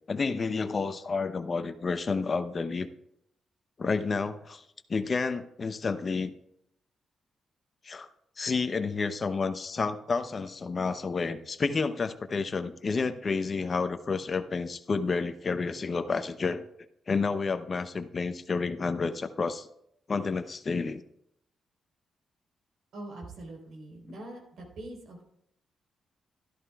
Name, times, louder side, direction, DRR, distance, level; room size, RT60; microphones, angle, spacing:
voice 1, 0.1-2.9 3.8-4.6 4.9-6.3 7.8-8.1 8.4-16.7 17.1-19.7 20.1-21.0, left 4 dB, 45° left, 10 dB, 0.7 m, -30 dB
voice 2, 22.9-25.2, right 2 dB, 75° right, 0 dB, 4.0 m, -43 dB
13.0 x 12.0 x 2.4 m, 0.75 s
cardioid pair, 60°, 0 cm